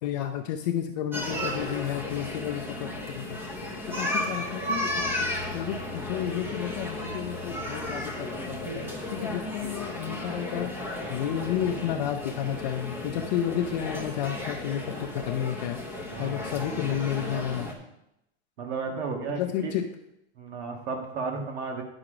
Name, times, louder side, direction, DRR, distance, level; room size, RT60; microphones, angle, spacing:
voice 1, 0.0-3.4 3.9-5.1 5.5-8.9 9.1-10.7 11.1-15.8 16.2-17.7 19.3-19.9, left 10 dB, 40° left, 4 dB, 0.5 m, -31 dB
sound 1, 1.1-17.7, left 1 dB, 5° right, 0.7 m, -34 dB
voice 2, 16.1-17.8 18.6-19.8 20.4-21.8, right 4 dB, 75° right, 2 dB, 1.8 m, -35 dB
9.7 x 6.1 x 5.0 m, 0.84 s
supercardioid pair, 175°, 32 cm